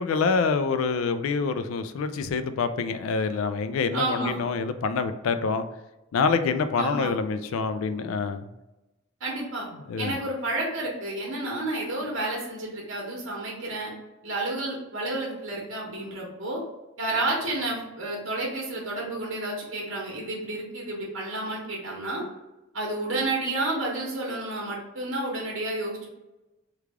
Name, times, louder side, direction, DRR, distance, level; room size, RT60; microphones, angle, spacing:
voice 1, 0.0-5.6 6.1-8.5 9.9-10.2, left 5 dB, 85° left, 10 dB, 0.3 m, -26 dB
voice 2, 3.9-4.4 6.7-7.2 9.2-9.7 10.0-13.9 14.2-16.6 17.0-22.2 22.7-26.1, right 2 dB, 70° right, -2 dB, 1.0 m, -30 dB
3.2 x 2.3 x 3.5 m, 1.0 s
head